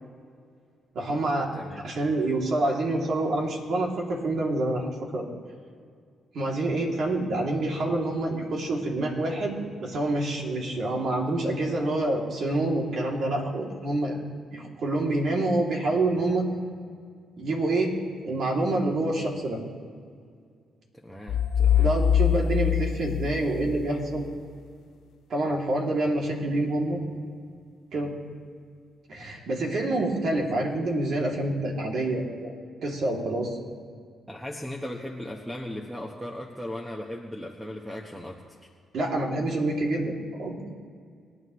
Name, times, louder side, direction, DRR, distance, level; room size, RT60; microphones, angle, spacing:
voice 1, 0.9-1.5 1.8-5.3 6.3-14.2 14.5-16.4 17.4-17.9 18.2-19.6 21.8-24.3 25.3-27.0 27.9-28.1 29.1-32.5 32.8-33.6 38.9-40.1 40.4-40.7, right 2 dB, 65° right, -1 dB, 2.9 m, -27 dB
voice 2, 1.5-1.8 20.9-22.0 34.3-38.7, left 1 dB, 5° right, 0 dB, 1.3 m, -37 dB
sound 1, 21.3-24.2, left 9 dB, 75° left, 0.4 m, -23 dB
28.0 x 9.5 x 3.2 m, 2.1 s
cardioid pair, 70°, 0 cm